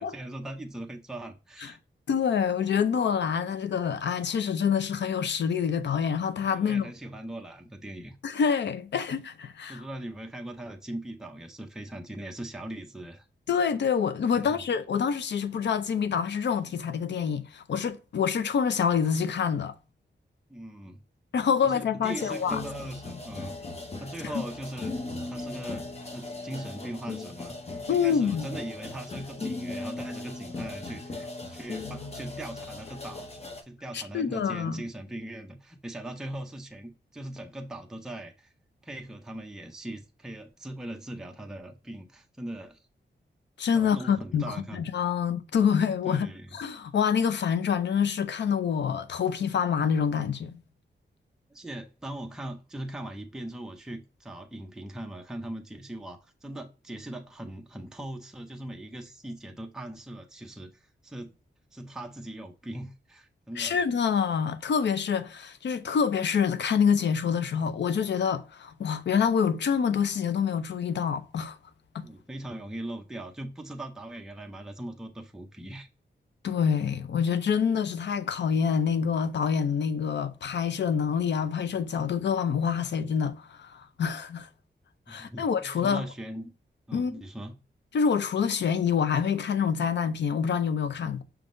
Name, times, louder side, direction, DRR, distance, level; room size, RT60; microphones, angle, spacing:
voice 1, 0.0-1.8 6.5-8.2 9.7-13.3 14.3-14.6 20.5-21.0 21.6-23.6 24.0-24.9 25.3-25.9 26.1-33.3 33.6-38.5 38.8-42.8 43.7-44.8 46.0-46.6 51.5-61.4 61.7-63.8 72.0-75.9 85.1-86.5 86.9-87.6, right 1 dB, 5° right, 0.5 m, -40 dB
voice 2, 2.1-6.9 8.2-9.8 13.5-19.7 21.3-22.6 24.2-24.4 27.9-28.5 33.9-34.8 43.6-46.3 46.5-50.6 63.6-71.6 71.9-72.0 76.4-84.5 85.1-86.0 86.9-87.2 87.9-91.2, left 7 dB, 70° left, 0.5 m, -26 dB
sound 1, 22.0-33.6, left 2 dB, 35° left, 0.7 m, -38 dB
5.8 x 3.6 x 2.5 m
wide cardioid pair, 160°, 19 cm